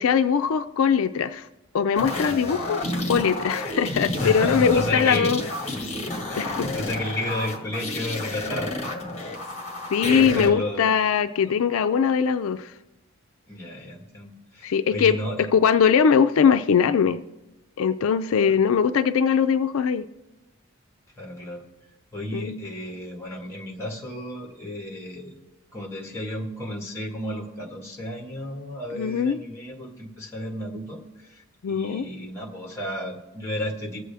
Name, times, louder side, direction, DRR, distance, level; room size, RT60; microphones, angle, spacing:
voice 1, 0.0-1.5 1.7-2.8 3.1-5.4 6.4-6.7 9.9-12.7 14.6-15.2 15.5-17.2 17.8-20.1 22.3-22.6 28.9-29.4 31.6-32.1, left 7 dB, 70° left, 10 dB, 0.4 m, -21 dB
sound 1, 2.0-10.5, left 1 dB, 30° left, 1.5 m, -30 dB
voice 2, 4.2-5.3 6.3-8.7 10.2-10.9 13.5-15.5 21.2-21.6 22.1-25.4 25.7-34.0, left 1 dB, 10° left, 1 dB, 1.6 m, -32 dB
21.0 x 7.7 x 3.4 m, 1.0 s
head